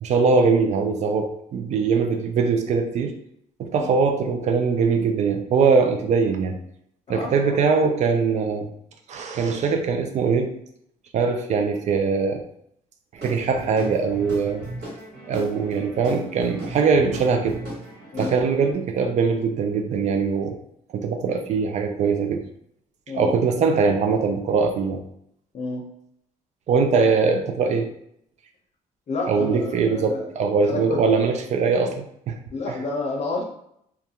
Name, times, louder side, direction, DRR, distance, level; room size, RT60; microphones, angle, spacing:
voice 1, 0.0-3.2 3.6-6.6 7.1-8.7 9.1-10.6 11.1-12.4 13.1-14.6 15.3-17.6 18.2-20.6 20.9-22.5 23.1-25.0 26.7-27.9 29.3-32.4, right 5 dB, 50° right, 4 dB, 0.4 m, -22 dB
voice 2, 7.1-7.6 18.1-18.4 23.1-23.4 25.5-25.8 29.1-30.3 30.6-31.0 32.5-33.4, left 3 dB, 45° left, 1 dB, 0.7 m, -30 dB
Guitar / Drum, 13.2-18.7, right 1 dB, 85° right, 1.3 m, -37 dB
2.3 x 2.3 x 2.8 m, 0.72 s
cardioid pair, 105°, 15 cm